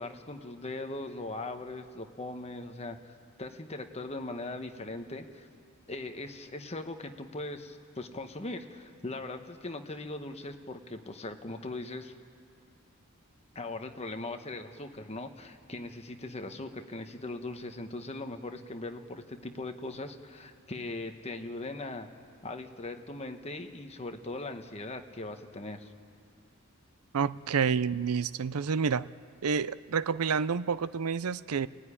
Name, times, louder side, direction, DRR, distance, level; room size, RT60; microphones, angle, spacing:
voice 1, 0.0-3.0 3.4-5.5 5.9-12.1 13.5-22.1 22.4-25.9, left 2 dB, 30° left, 6 dB, 1.3 m, -40 dB
voice 2, 27.1-29.1 29.4-31.7, right 6 dB, 90° right, 17 dB, 0.5 m, -29 dB
29.5 x 15.5 x 10.0 m, 2.4 s
head